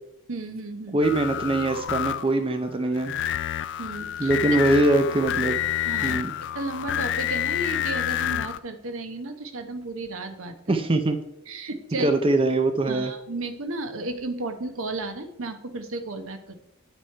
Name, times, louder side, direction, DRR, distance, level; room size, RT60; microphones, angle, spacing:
voice 1, 0.3-1.0 3.8-4.6 5.8-6.2 6.5-10.8 11.5-12.1 12.9-16.6, right 2 dB, 65° right, 7 dB, 1.0 m, -33 dB
voice 2, 0.9-3.2 4.2-5.6 6.0-6.3 10.7-11.2 12.0-13.1, right 2 dB, 25° right, 7 dB, 0.6 m, -22 dB
sound 1, 1.0-2.4 3.0-8.6, left 11 dB, 55° left, 0.4 m, -28 dB
8.3 x 6.2 x 4.5 m, 0.81 s
head